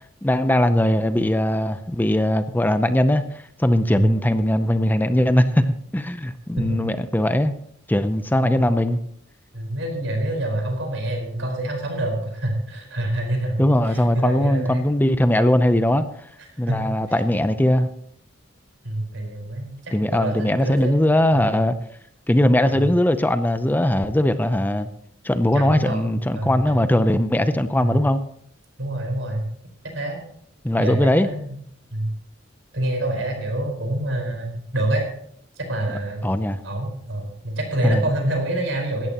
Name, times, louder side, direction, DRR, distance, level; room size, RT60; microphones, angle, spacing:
voice 1, 0.0-7.5 7.9-9.0 13.6-16.0 16.6-17.9 19.9-21.7 22.3-24.9 25.2-28.2 30.6-31.3 36.2-36.6 37.8-38.0, left 1 dB, 10° left, 0.6 m, -20 dB
voice 2, 9.5-13.5 13.9-14.8 16.4-17.0 18.8-21.5 22.7-22.9 25.5-27.2 27.8-27.9 28.8-29.5 29.8-30.2 30.8-31.6 31.9-32.1 32.7-35.1 35.6-36.2 36.6-39.1, right 1 dB, 80° right, 4.9 m, -27 dB
17.5 x 13.5 x 3.0 m
head